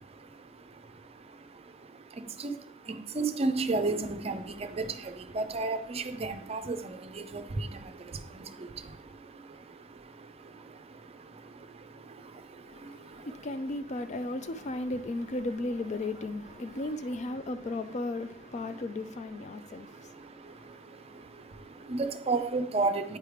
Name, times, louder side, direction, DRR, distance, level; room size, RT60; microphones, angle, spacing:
voice 1, 0.0-13.4 16.7-16.8 18.6-18.8 19.5-23.2, right 3 dB, 35° right, 0.5 m, -35 dB
voice 2, 12.7-22.0, left 2 dB, 40° left, 0.4 m, -36 dB
9.3 x 3.3 x 5.0 m
head